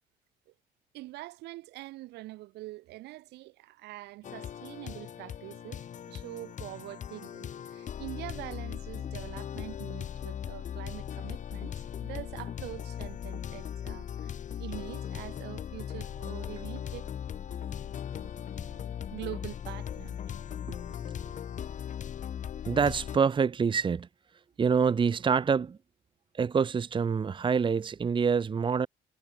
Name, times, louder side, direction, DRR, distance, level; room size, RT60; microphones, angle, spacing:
voice 1, 0.9-5.8 6.1-17.1 19.1-20.4, right 19 dB, 85° right, 3.1 m, -44 dB
sound 1, 4.2-23.2, left 9 dB, 45° left, 1.9 m, -38 dB
voice 2, 22.7-24.1 24.6-25.8 26.3-28.9, right 6 dB, 30° right, 1.2 m, -26 dB
cardioid pair, 110°, 17 cm